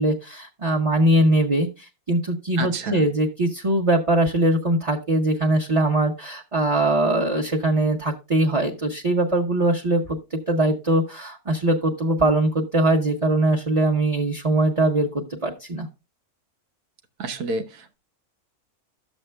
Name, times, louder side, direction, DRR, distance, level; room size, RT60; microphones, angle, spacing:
voice 1, 0.0-15.9, right 1 dB, 30° right, -1 dB, 0.8 m, -21 dB
voice 2, 2.6-3.1 17.2-18.0, right 3 dB, 90° right, 6 dB, 1.5 m, -29 dB
12.5 x 7.2 x 2.2 m, 0.28 s
omnidirectional pair, 1.6 m